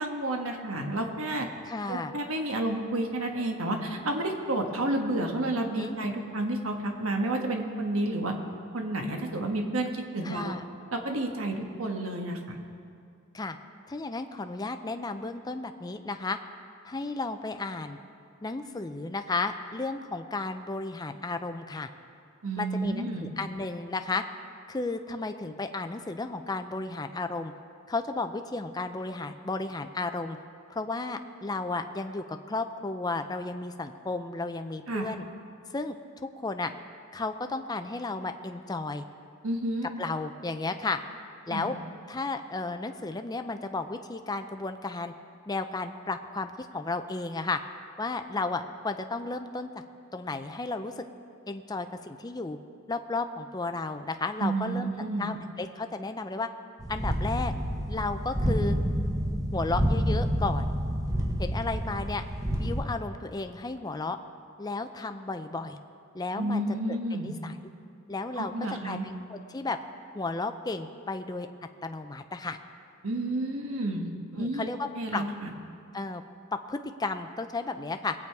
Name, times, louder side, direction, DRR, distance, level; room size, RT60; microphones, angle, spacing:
voice 1, 0.0-1.5 1.9-8.3 8.7-10.5 10.9-12.6 22.4-23.3 34.9-35.1 39.4-39.9 41.5-41.6 54.4-55.3 66.4-67.3 68.3-69.0 73.0-74.7 74.9-75.5, right 1 dB, 70° right, 3 dB, 1.5 m, -30 dB
voice 2, 1.7-2.1 5.7-6.0 10.2-10.6 13.3-13.6 13.9-16.4 16.8-18.0 18.4-21.9 22.6-24.2 24.7-27.5 27.9-30.4 30.7-35.2 35.7-35.9 36.2-36.7 37.1-39.0 40.0-41.0 41.5-41.7 42.1-45.1 45.5-47.6 48.0-49.7 50.1-51.0 51.5-52.6 52.9-54.9 55.2-56.5 56.9-57.5 57.9-58.8 59.5-60.6 61.4-62.2 62.5-64.2 64.6-65.8 66.1-66.8 67.2-67.6 68.1-68.5 68.8-69.8 70.1-71.5 71.8-72.6 74.4-75.3 75.9-76.2 76.7-78.1, left 3 dB, 20° left, 7 dB, 0.5 m, -33 dB
sound 1, 56.8-62.8, equal, 15° right, 0.9 m, -28 dB
21.5 x 8.6 x 4.7 m, 2.4 s
head